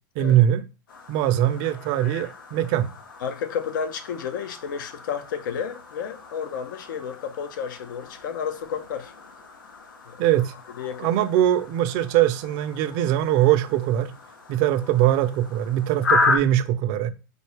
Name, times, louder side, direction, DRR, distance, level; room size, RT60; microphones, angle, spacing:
voice 1, 0.2-0.6 1.1-2.9 10.2-10.5 11.0-14.1 14.5-17.1, right 12 dB, 45° right, 0.6 m, -21 dB
sound 1, 0.9-16.4, left 3 dB, 90° left, 1.1 m, -33 dB
voice 2, 3.2-9.1 10.1-10.3 10.8-11.1, left 7 dB, 70° left, 0.8 m, -31 dB
4.2 x 2.7 x 3.4 m
hypercardioid pair, 125°, 11 cm